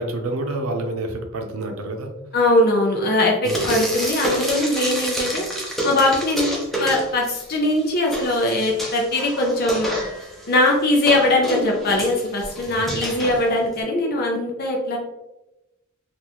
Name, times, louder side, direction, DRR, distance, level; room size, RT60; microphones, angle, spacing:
voice 1, 0.0-2.1 3.4-3.7 12.7-13.0, right 2 dB, 90° right, 4 dB, 0.6 m, -28 dB
voice 2, 2.3-5.4 5.8-9.9 10.5-15.0, left 1 dB, 50° left, 0 dB, 0.6 m, -21 dB
Frying (food), 3.4-7.5 7.8-13.8, equal, ahead, 0.7 m, -29 dB
3.8 x 2.5 x 2.9 m, 0.95 s
head